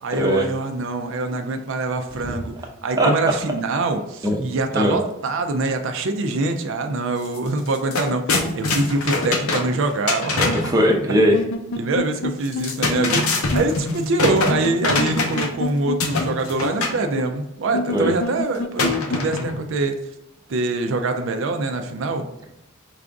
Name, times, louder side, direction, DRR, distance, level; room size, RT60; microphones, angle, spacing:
voice 1, 0.0-2.5 2.8-10.5 11.8-19.9 20.5-22.2, right 2 dB, 60° right, 5 dB, 0.4 m, -24 dB
voice 2, 4.2-5.0 10.4-11.4 17.9-18.1, equal, 15° right, 0 dB, 0.6 m, -19 dB
sound 1, 7.2-7.4 7.7-10.8 12.4-15.6 16.0-17.0 18.8-19.7, left 3 dB, 85° left, 0.7 m, -23 dB
sound 2, 10.5-10.6 11.2-12.3 12.6-12.7 13.0-13.1 13.5-13.6 14.5-16.0 16.2-16.3 16.6-16.7 17.2-17.3 17.7-19.2, left 3 dB, 55° left, 0.4 m, -26 dB
4.8 x 2.5 x 3.4 m, 0.87 s
head